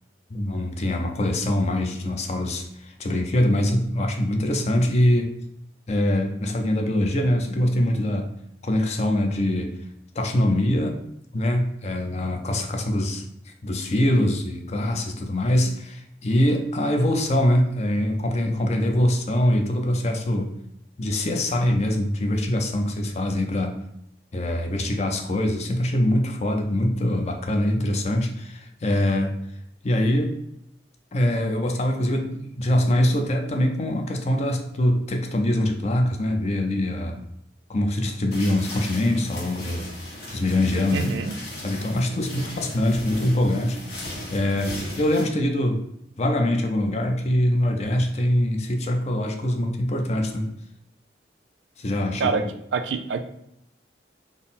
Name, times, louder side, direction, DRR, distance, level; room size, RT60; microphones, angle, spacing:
voice 1, 0.3-5.3 5.9-8.3 8.6-9.8 10.2-11.0 11.3-20.5 21.0-23.8 24.3-29.4 29.8-30.4 31.1-37.2 37.7-39.9 40.3-41.1 41.6-45.8 46.2-50.5 51.8-52.4, left 1 dB, 35° left, 4 dB, 0.5 m, -23 dB
sound 1, 38.3-45.2, left 1 dB, 60° left, 1.3 m, -37 dB
voice 2, 40.9-41.3 52.2-52.4 52.7-53.2, right 5 dB, 80° right, 8 dB, 0.4 m, -25 dB
3.7 x 2.0 x 4.0 m, 0.77 s
head